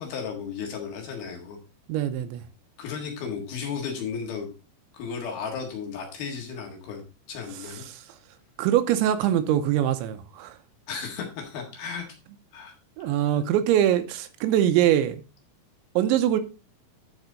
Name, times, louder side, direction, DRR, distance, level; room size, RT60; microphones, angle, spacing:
voice 1, 0.0-1.6 2.8-4.5 4.9-7.0 7.3-7.8 10.9-12.1 12.5-12.7 13.0-13.1, left 6 dB, 60° left, 3.2 m, -34 dB
voice 2, 1.9-2.4 7.9-8.0 8.6-10.6 13.0-15.2 16.0-16.4, right 11 dB, 80° right, 2.9 m, -23 dB
11.0 x 6.0 x 3.9 m
omnidirectional pair, 5.4 m